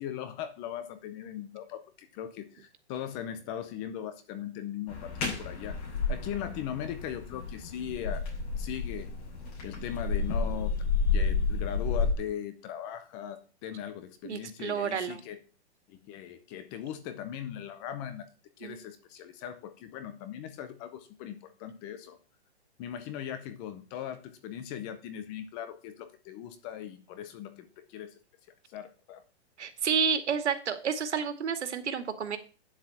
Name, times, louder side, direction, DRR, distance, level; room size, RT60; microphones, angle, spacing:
voice 1, 0.0-5.8 6.1-8.3 8.6-9.2 9.6-10.7 11.1-15.4 15.9-18.3 18.6-22.2 22.8-28.1 28.7-29.2, left 10 dB, 15° left, 11 dB, 0.5 m, -39 dB
sound 1, 4.9-12.1, left 4 dB, 35° left, 6.9 m, -31 dB
voice 2, 14.2-15.2 18.6-18.8 29.6-32.4, right 6 dB, 90° right, 9 dB, 2.3 m, -30 dB
9.7 x 7.7 x 7.1 m, 0.34 s
hypercardioid pair, 165°, 33 cm